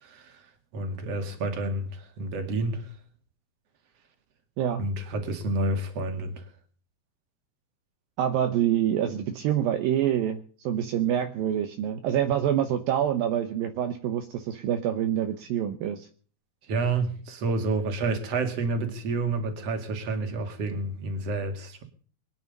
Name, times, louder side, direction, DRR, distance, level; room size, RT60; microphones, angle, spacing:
voice 1, 0.0-0.4 0.7-2.9 4.8-6.4 16.7-21.8, right 2 dB, 45° right, 3.1 m, -29 dB
voice 2, 8.2-10.4 10.7-16.0, right 10 dB, 75° right, 2.7 m, -26 dB
23.5 x 10.0 x 5.4 m
omnidirectional pair, 4.4 m